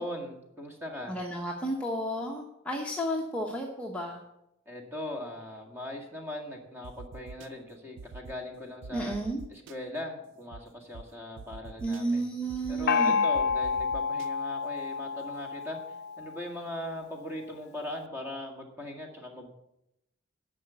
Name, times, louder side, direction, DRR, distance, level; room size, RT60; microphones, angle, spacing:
voice 1, 0.0-1.1 4.7-9.1 9.5-12.3 12.7-15.8 16.2-19.5, left 1 dB, 10° right, 1 dB, 1.9 m, -39 dB
voice 2, 1.1-4.2 8.9-9.4 11.8-13.2, right 1 dB, 5° left, -2 dB, 1.0 m, -32 dB
sound 1, 6.8-7.5 8.0-8.3 8.8-9.7 10.5-10.6 10.9-11.0 11.4-12.0 12.5-12.9 13.3-14.3, right 4 dB, 65° right, 0.4 m, -44 dB
Gong, 12.9-16.4, left 5 dB, 55° left, 0.6 m, -29 dB
11.0 x 5.8 x 8.0 m, 0.83 s
head